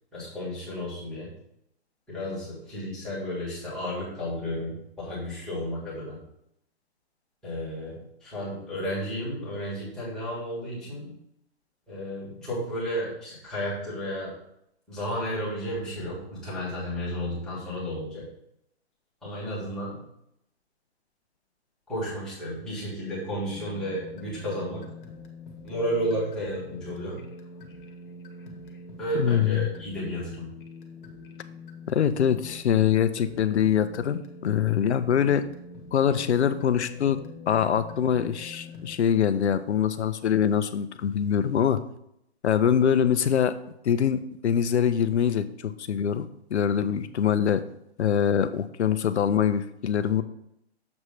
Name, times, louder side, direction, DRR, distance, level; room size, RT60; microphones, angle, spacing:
voice 1, 0.1-1.3 2.1-6.2 7.4-11.2 11.9-14.4 14.9-18.3 19.2-20.0 21.9-24.9 25.6-27.2 29.0-30.5, equal, ahead, -10 dB, 1.6 m, -32 dB
sound 1, 23.5-39.0, left 3 dB, 50° left, 1.3 m, -45 dB
voice 2, 29.1-29.7 31.9-35.4 35.9-37.2 37.5-41.8 42.4-43.5 43.8-47.6 48.0-50.2, left 8 dB, 90° left, 11 dB, 0.7 m, -24 dB
7.2 x 3.3 x 6.2 m, 0.77 s
hypercardioid pair, 175°, 33 cm